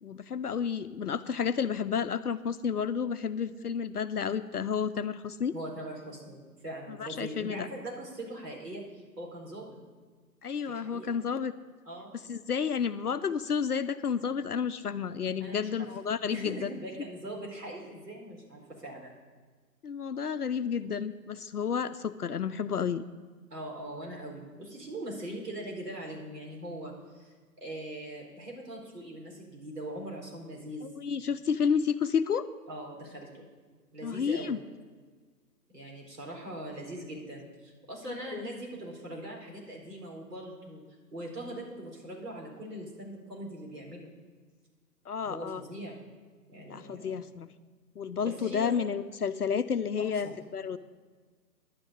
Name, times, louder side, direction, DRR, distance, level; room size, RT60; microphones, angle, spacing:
voice 1, 0.0-5.5 6.9-7.7 10.4-11.5 12.3-16.7 19.8-23.0 30.8-32.4 34.0-34.6 38.1-38.5 45.1-45.6 46.7-47.5 48.0-50.8, left 7 dB, 65° left, 11 dB, 0.6 m, -31 dB
voice 2, 5.5-8.8 9.2-9.8 10.7-11.2 11.9-12.1 15.4-15.9 16.3-19.1 23.5-30.9 32.7-33.5 33.9-34.6 35.7-40.8 41.1-44.1 45.2-46.0 46.5-47.2 48.2-48.8 50.0-50.3, right 1 dB, 70° right, -1 dB, 4.2 m, -41 dB
11.5 x 6.2 x 8.8 m, 1.5 s
figure-of-eight pair, 140°, 50 cm